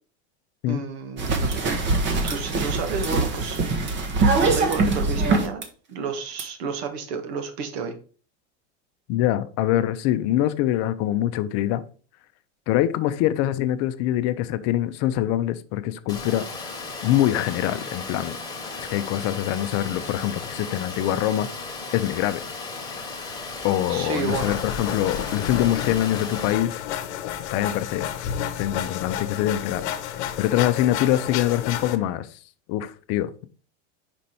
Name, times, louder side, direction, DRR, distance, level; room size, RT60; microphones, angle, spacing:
voice 1, 0.7-1.6 2.2-4.0 4.3-5.6 5.9-8.0 23.9-24.6, right 5 dB, 65° right, 1.7 m, -31 dB
sound 1, 1.2-5.6 6.4-6.5, right 3 dB, 35° right, 1.4 m, -23 dB
voice 2, 9.1-11.8 12.7-16.4 17.0-18.4 18.8-21.5 21.9-22.4 23.6-26.7 27.5-28.1 28.6-29.8 30.2-32.3 32.7-33.5, left 13 dB, 50° left, 0.7 m, -24 dB
Water, 16.1-26.5, left 3 dB, 10° left, 1.5 m, -35 dB
sound 2, 24.3-32.0, left 10 dB, 75° left, 1.0 m, -31 dB
5.3 x 5.1 x 4.3 m
supercardioid pair, 130°, 34 cm